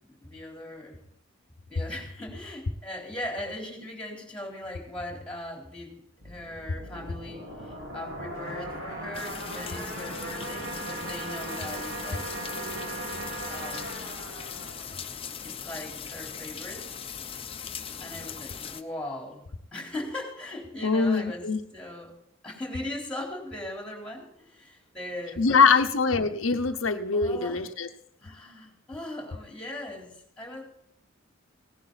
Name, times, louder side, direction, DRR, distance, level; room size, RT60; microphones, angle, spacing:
voice 1, 0.1-1.0 1.7-12.3 13.4-13.9 15.4-17.0 18.0-22.1 22.4-25.7 27.1-27.7 28.2-30.6, left 1 dB, 5° left, 0 dB, 3.9 m, -39 dB
sound 1, 6.2-15.7, right 1 dB, 60° right, 4.1 m, -38 dB
sound 2, 8.3-13.4, right 2 dB, 80° right, 2.0 m, -46 dB
sound 3, 9.1-18.8, left 7 dB, 30° left, 0.8 m, -40 dB
voice 2, 20.8-21.6 25.4-27.9, left 5 dB, 80° left, 6 dB, 0.8 m, -23 dB
17.5 x 11.0 x 4.1 m, 0.69 s
head